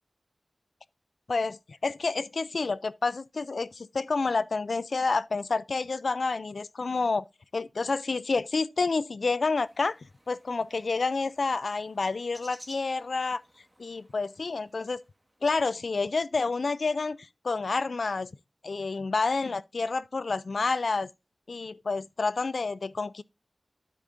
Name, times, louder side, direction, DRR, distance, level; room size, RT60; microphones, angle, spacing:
voice 1, 1.3-7.2 7.5-10.0 10.3-13.4 13.8-15.0 15.4-18.3 18.6-21.1 21.5-23.2, left 4 dB, 80° left, 0.3 m, -29 dB
sound 1, 9.5-15.7, right 1 dB, 15° right, 1.7 m, -56 dB
9.1 x 8.3 x 2.6 m
wide cardioid pair, 45°, 0 cm